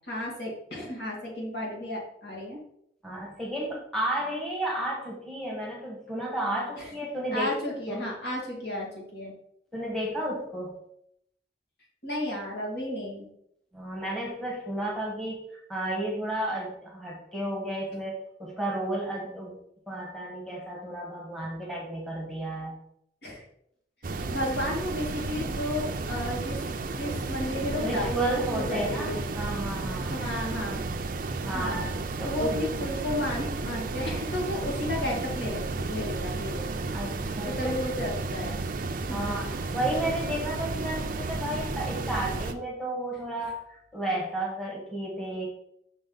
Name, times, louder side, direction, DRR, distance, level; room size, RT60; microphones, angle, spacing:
voice 1, 0.1-2.6 6.8-6.9 7.3-9.3 12.0-13.3 23.2-23.4 24.3-26.6 26.9-29.2 30.1-30.8 31.5-31.9 32.2-36.7 37.4-38.6 39.1-39.5, left 1 dB, 60° left, -3 dB, 2.4 m, -33 dB
voice 2, 3.0-8.0 9.7-10.8 13.7-19.5 19.9-22.8 27.1-27.2 27.8-30.2 31.4-32.6 36.9-37.7 39.1-45.5, right 1 dB, 5° left, -3 dB, 1.5 m, -32 dB
sound 1, 24.0-42.5, right 3 dB, 50° right, 0.5 m, -32 dB
6.1 x 5.1 x 3.9 m, 0.72 s
head